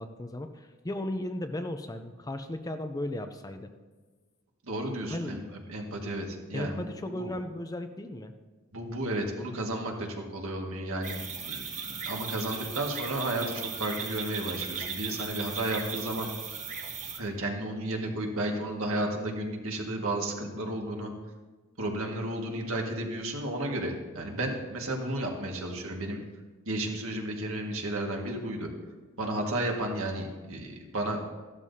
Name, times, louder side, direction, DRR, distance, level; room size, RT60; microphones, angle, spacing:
voice 1, 0.0-3.7 5.1-5.4 6.5-8.3, left 1 dB, 15° left, 7 dB, 0.5 m, -35 dB
voice 2, 4.7-5.4 5.7-6.8 7.2-7.3 8.7-16.3 17.2-21.1 21.8-26.2 26.6-28.7 29.2-31.2, right 1 dB, 65° right, 1 dB, 1.8 m, -33 dB
sound 1, 11.0-17.2, right 6 dB, 35° right, 1.2 m, -37 dB
15.0 x 12.0 x 2.8 m, 1.3 s
head